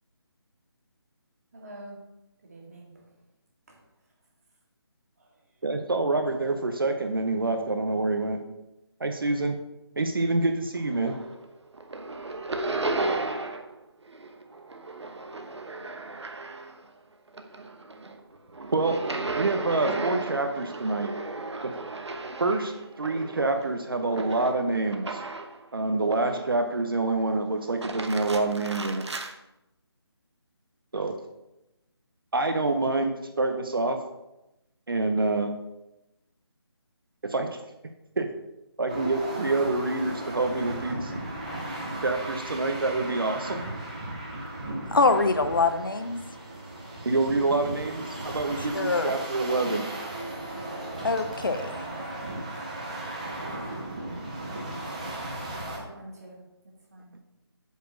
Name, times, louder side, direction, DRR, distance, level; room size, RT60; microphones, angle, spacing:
voice 1, 1.5-2.0 2.4-2.9 55.5-56.4 56.9-57.1, right 1 dB, 35° right, -1 dB, 1.9 m, -45 dB
voice 2, 5.6-8.4 9.0-9.6 10.0-11.1 18.7-21.1 22.4-22.7 23.0-25.2 25.7-29.0 30.9-31.2 32.3-34.0 34.9-35.5 37.2-37.5 38.2-38.3 38.8-41.1 42.0-43.6 47.0-49.9, right 2 dB, 55° right, 6 dB, 0.8 m, -26 dB
sound 1, 10.7-11.5 11.7-13.8 14.0-16.9 17.3-25.6 26.1-26.8 27.6-29.3, right 3 dB, 85° right, 1.1 m, -35 dB
sound 2, 38.9-55.8, right 1 dB, 15° right, 0.8 m, -36 dB
voice 3, 44.9-46.2 48.7-49.1 51.0-51.9, left 3 dB, 50° left, 9 dB, 0.6 m, -24 dB
8.3 x 4.3 x 6.0 m, 0.92 s
figure-of-eight pair, 180°, 14 cm